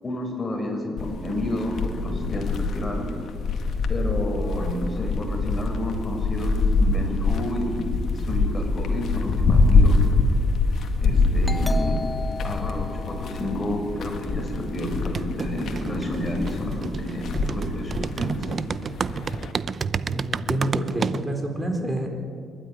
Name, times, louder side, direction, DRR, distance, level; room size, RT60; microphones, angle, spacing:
voice 1, 0.0-3.1 3.9-10.0 11.0-12.0 12.4-18.4, left 1 dB, 25° left, 1 dB, 6.3 m, -30 dB
sound 1, 1.0-19.5, left 3 dB, 65° left, 2.1 m, -25 dB
Doorbell, 11.4-14.8, left 2 dB, 5° left, 1.6 m, -36 dB
sound 2, 14.8-21.2, right 6 dB, 45° right, 0.6 m, -31 dB
voice 2, 19.9-22.1, right 1 dB, 15° right, 3 dB, 4.4 m, -28 dB
25.5 x 12.0 x 9.9 m, 2.3 s
cardioid pair, 90°, 0 cm